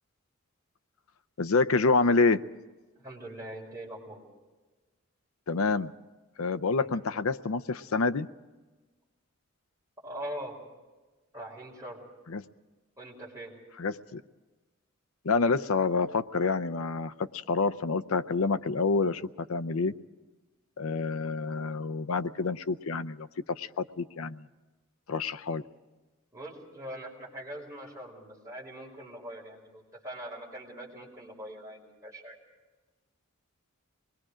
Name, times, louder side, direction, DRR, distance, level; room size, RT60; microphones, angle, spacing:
voice 1, 1.4-2.4 5.5-5.9 6.4-8.3 12.3-12.4 13.8-14.2 15.2-19.2 19.5-19.9 20.8-24.4 25.1-25.6, left 4 dB, 80° left, 14 dB, 0.6 m, -27 dB
voice 2, 3.0-4.2 6.8-7.0 10.0-10.6 11.3-12.0 13.0-13.5 26.3-32.4, right 1 dB, 15° right, -4 dB, 5.3 m, -42 dB
25.0 x 21.0 x 5.0 m, 1.2 s
head